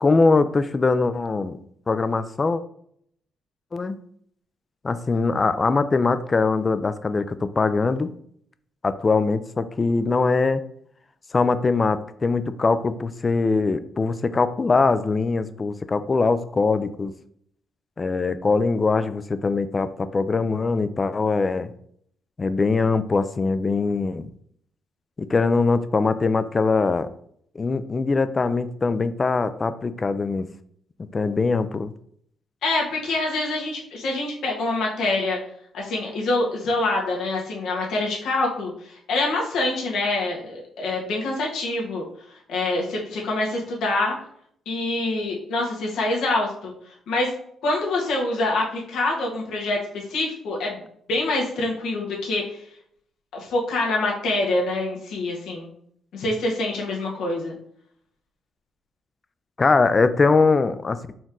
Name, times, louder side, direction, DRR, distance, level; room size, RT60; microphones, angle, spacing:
voice 1, 0.0-1.6 1.9-2.6 3.7-4.0 4.8-8.1 8.8-10.6 11.3-17.1 18.0-21.7 22.4-24.3 25.2-27.1 27.6-30.5 31.1-31.9 59.6-61.2, left 4 dB, 30° left, 13 dB, 0.3 m, -22 dB
voice 2, 32.6-35.4 35.7-42.0 42.5-44.2 44.6-46.7 47.1-47.3 47.6-50.8 51.1-52.6 53.3-55.7 56.1-57.5, left 2 dB, 80° left, -2 dB, 1.4 m, -25 dB
4.2 x 3.0 x 3.8 m, 0.67 s
cardioid pair, 90°, 0 cm